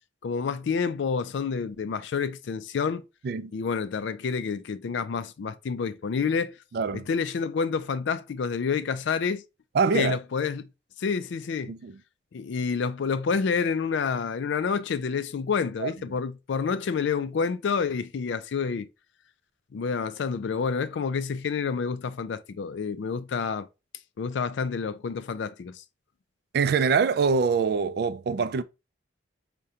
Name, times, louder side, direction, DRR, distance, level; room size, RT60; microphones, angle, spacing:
voice 1, 0.2-3.0 3.5-6.5 6.9-9.4 9.9-10.7 11.0-11.7 12.3-18.9 19.7-23.7 24.2-25.8, left 5 dB, 70° left, 0.4 m, -28 dB
voice 2, 6.7-7.0 9.7-10.2 11.7-11.9 15.8-15.9 26.5-28.6, right 5 dB, 55° right, 0.3 m, -24 dB
4.8 x 2.2 x 2.6 m
head